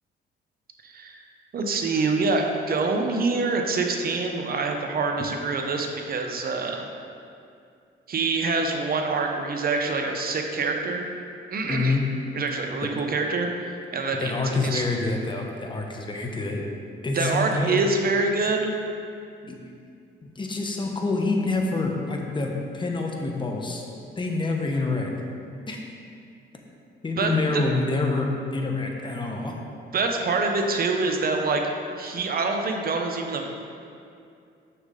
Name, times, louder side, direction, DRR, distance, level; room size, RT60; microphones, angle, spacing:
voice 1, 0.8-1.2 1.5-6.9 8.1-11.0 11.5-11.9 12.3-14.8 17.1-18.7 19.4-19.6 27.2-27.7 29.9-31.6 32.0-33.6, right 3 dB, 50° right, 3 dB, 0.9 m, -26 dB
voice 2, 11.6-12.1 14.2-16.6 17.0-17.8 19.5-19.6 20.2-23.8 24.2-25.1 25.7-25.8 27.0-29.5, left 3 dB, 25° left, 1 dB, 1.0 m, -27 dB
6.9 x 6.4 x 3.8 m, 2.4 s
cardioid pair, 90°, 20 cm